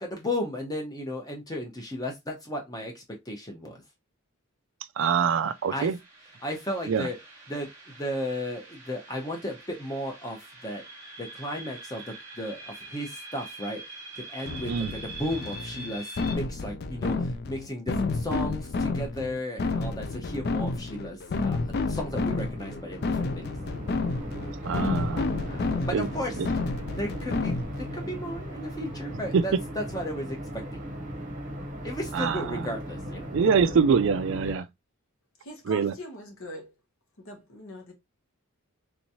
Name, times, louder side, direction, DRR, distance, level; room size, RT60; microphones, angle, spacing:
voice 1, 0.0-3.8 5.7-5.9 6.4-7.2 7.5-10.8 11.2-23.4 25.5-26.4 26.9-30.8 31.8-33.8 34.4-34.7, left 1 dB, 15° left, 0.8 m, -35 dB
voice 2, 5.0-6.0 6.9-7.1 14.7-14.9 24.6-25.2 25.9-26.1 29.3-29.4 32.1-32.4 33.3-34.7 35.7-35.9, right 6 dB, 55° right, 0.3 m, -24 dB
sound 1, 5.4-16.4, right 2 dB, 15° right, 1.2 m, -44 dB
sound 2, 14.5-28.0, left 3 dB, 45° left, 0.4 m, -30 dB
sound 3, 22.0-34.5, equal, 35° right, 0.8 m, -38 dB
voice 3, 35.4-36.7 37.2-37.9, left 1 dB, 70° left, 1.2 m, -42 dB
3.5 x 3.0 x 2.7 m
head